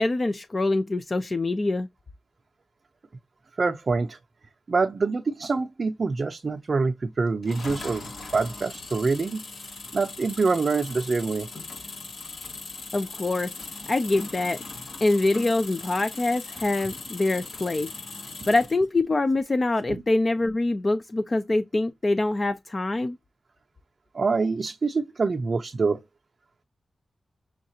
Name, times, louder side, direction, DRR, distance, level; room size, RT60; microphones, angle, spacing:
voice 1, 0.0-1.9 12.9-13.5 13.9-14.6 15.0-17.9 18.5-23.2, left 2 dB, 35° left, 0.4 m, -24 dB
voice 2, 3.6-4.2 4.7-9.4 9.9-11.5 18.4-18.5 19.9-20.0 24.1-26.0, right 4 dB, 50° right, 0.6 m, -25 dB
sound 1, 7.4-18.8, left 3 dB, 75° left, 1.7 m, -39 dB
6.4 x 2.4 x 2.7 m
wide cardioid pair, 105°, 0 cm